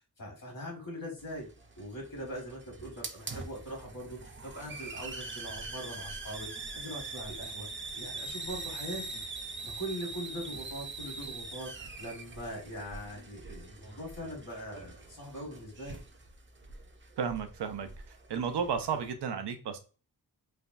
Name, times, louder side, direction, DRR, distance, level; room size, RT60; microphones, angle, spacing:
voice 1, 0.2-1.5 1.8-7.7 7.9-9.2 9.6-16.0, equal, 60° left, -1 dB, 1.5 m, -41 dB
Hiss, 1.2-19.1, right 3 dB, 30° right, 0.5 m, -43 dB
voice 2, 17.2-17.9 18.3-19.8, right 6 dB, 90° right, 8 dB, 0.6 m, -33 dB
3.3 x 2.2 x 2.5 m, 0.34 s
wide cardioid pair, 60°, 39 cm